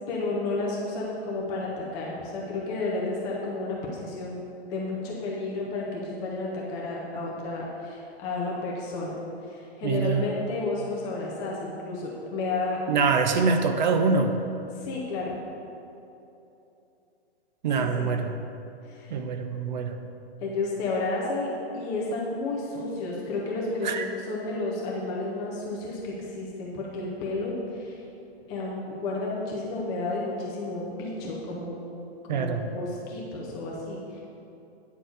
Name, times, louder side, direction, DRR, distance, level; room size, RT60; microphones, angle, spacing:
voice 1, 0.1-4.4 4.6-9.1 9.5-12.8 14.8-15.4 17.8-18.1 18.9-19.1 20.4-21.5 21.7-28.0 28.5-31.8 32.2-34.2, left 2 dB, 10° left, -4 dB, 0.5 m, -31 dB
voice 2, 9.8-10.2 12.9-14.4 17.6-18.4 19.1-20.0 23.8-24.0 32.3-32.7, right 4 dB, 45° right, 7 dB, 0.6 m, -24 dB
9.3 x 4.3 x 6.7 m, 2.9 s
hypercardioid pair, 160°, 33 cm